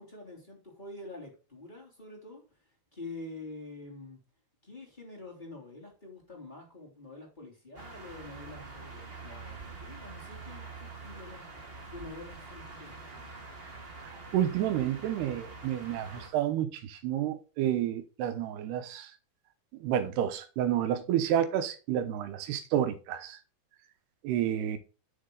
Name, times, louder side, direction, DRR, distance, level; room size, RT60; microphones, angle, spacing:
voice 1, 0.0-2.4 2.9-4.2 4.6-11.5 11.9-13.2, left 2 dB, 10° left, 2.9 m, -46 dB
sound 1, 7.7-16.3, right 3 dB, 20° right, 1.5 m, -45 dB
voice 2, 14.0-19.1 19.8-23.4 24.2-24.8, right 10 dB, 80° right, 2.9 m, -30 dB
10.0 x 6.8 x 3.9 m
omnidirectional pair, 4.7 m